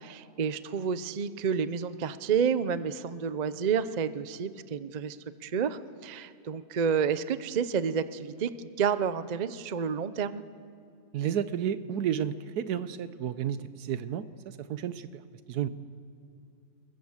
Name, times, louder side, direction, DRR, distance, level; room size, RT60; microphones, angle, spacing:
voice 1, 0.0-5.2 5.4-10.4, right 7 dB, 50° right, 13 dB, 0.5 m, -30 dB
voice 2, 11.1-15.2 15.5-15.7, right 9 dB, 80° right, 13 dB, 1.3 m, -32 dB
23.5 x 21.5 x 7.3 m, 2.7 s
omnidirectional pair, 1.7 m